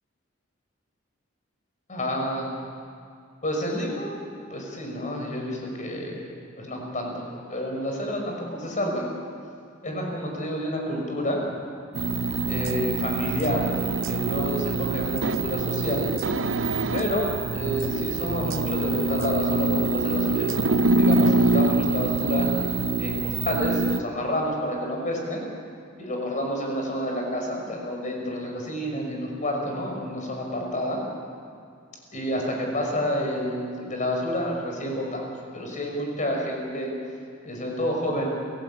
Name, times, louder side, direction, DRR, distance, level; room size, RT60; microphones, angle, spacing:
voice 1, 1.9-2.5 3.4-4.2 4.5-6.3 6.6-7.2 7.5-9.1 9.8-11.4 12.5-13.7 14.1-16.1 16.9-20.6 20.9-22.5 23.0-25.4 26.0-31.0 32.1-35.2 35.5-36.9 37.4-38.3, equal, 40° left, 1 dB, 6.0 m, -29 dB
sound 1, 11.9-24.0, right 2 dB, 70° right, 0.8 m, -25 dB
28.5 x 17.0 x 8.8 m, 2.4 s
head